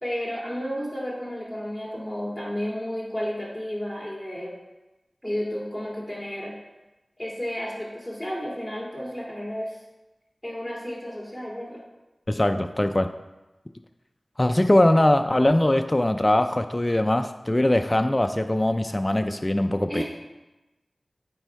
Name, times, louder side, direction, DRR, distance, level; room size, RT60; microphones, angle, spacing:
voice 1, 0.0-4.6 5.2-6.6 7.2-9.8 10.4-11.8 19.9-20.0, equal, ahead, -4 dB, 2.4 m, -32 dB
voice 2, 12.3-13.1 14.4-20.0, left 1 dB, 30° left, 7 dB, 0.3 m, -21 dB
8.8 x 3.5 x 4.6 m, 1.1 s
wide cardioid pair, 50°, 0 cm